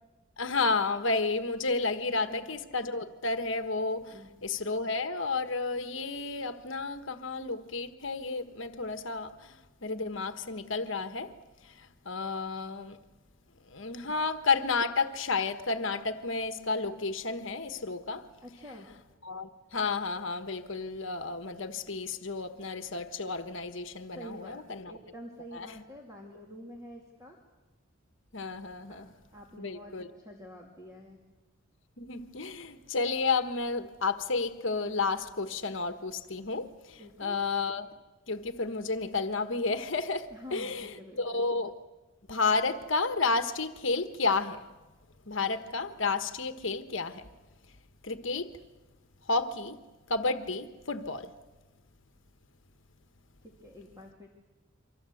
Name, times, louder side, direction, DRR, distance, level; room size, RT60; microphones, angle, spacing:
voice 1, 0.4-11.3 11.6-13.0 13.7-18.3 19.2-24.9 25.5-25.7 28.3-29.1 29.6-30.1 32.0-37.9 38.3-41.8 42.3-44.6 45.2-47.3 48.0-48.5 49.3-49.8 50.1-51.3, left 3 dB, 60° left, 1.3 m, -31 dB
voice 2, 18.4-18.9 24.1-27.4 28.9-31.2 37.0-37.4 40.3-41.4 53.4-54.3, equal, 15° right, 2.5 m, -48 dB
28.5 x 25.0 x 7.8 m
head